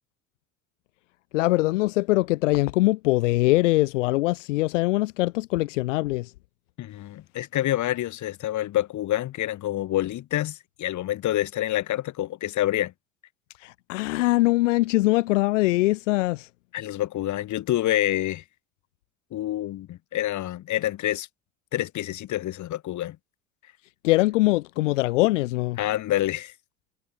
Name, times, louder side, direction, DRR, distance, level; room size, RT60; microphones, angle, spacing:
voice 1, 1.3-6.3 13.6-16.5 24.0-25.8, left 20 dB, 70° left, 1.9 m, -22 dB
voice 2, 6.8-12.9 16.7-18.4 19.3-21.3 21.7-23.2 25.8-26.5, left 14 dB, 50° left, 3.7 m, -27 dB
hypercardioid pair, 70°, 38 cm